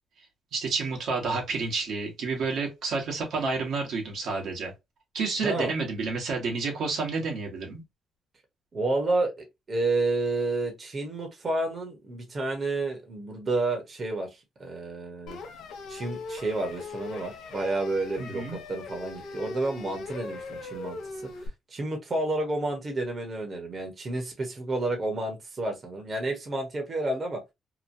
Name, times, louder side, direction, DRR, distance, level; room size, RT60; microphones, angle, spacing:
voice 1, 0.5-4.7 5.1-7.8 18.2-18.6, right 4 dB, 70° right, 1.1 m, -30 dB
voice 2, 8.7-15.4 15.9-21.2 21.7-27.4, right 2 dB, 40° right, 1.0 m, -30 dB
sound 1, 15.3-21.5, left 3 dB, 85° left, 0.6 m, -40 dB
2.9 x 2.2 x 2.6 m
cardioid pair, 90°, 0 cm